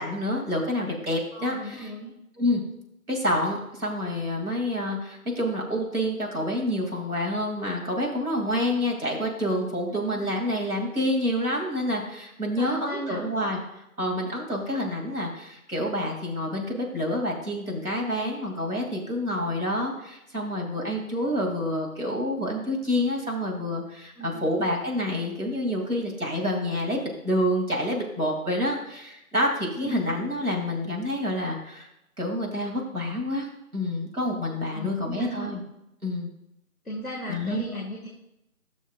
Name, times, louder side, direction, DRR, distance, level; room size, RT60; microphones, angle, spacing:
voice 1, 0.0-1.9 2.4-2.6 3.1-13.6 14.0-31.9 32.2-33.5 33.7-35.6 36.0-36.3 37.3-37.6, left 1 dB, 90° right, 0 dB, 2.7 m, -28 dB
voice 2, 1.3-2.1 9.9-10.3 12.6-13.3 24.2-24.5 29.8-30.2 34.7-35.5 36.8-38.1, equal, ahead, -4 dB, 0.9 m, -36 dB
14.0 x 6.3 x 2.4 m, 0.84 s
figure-of-eight pair, 170°, 43 cm